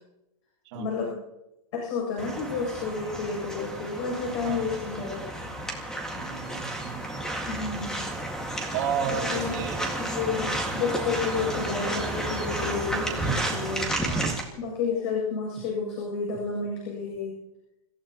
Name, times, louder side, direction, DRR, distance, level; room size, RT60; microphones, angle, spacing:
voice 1, 0.7-1.1 1.7-5.5 7.5-8.0 9.1-9.7 10.0-13.9 14.6-17.3, left 5 dB, 50° left, -2 dB, 7.9 m, -31 dB
sound 1, 2.2-14.4, right 1 dB, 5° left, 2.0 m, -32 dB
voice 2, 6.2-7.0 8.7-9.9 13.2-13.4 14.0-14.4, right 8 dB, 50° right, -4 dB, 2.5 m, -32 dB
29.5 x 15.0 x 3.0 m, 0.94 s
supercardioid pair, 160°, 19 cm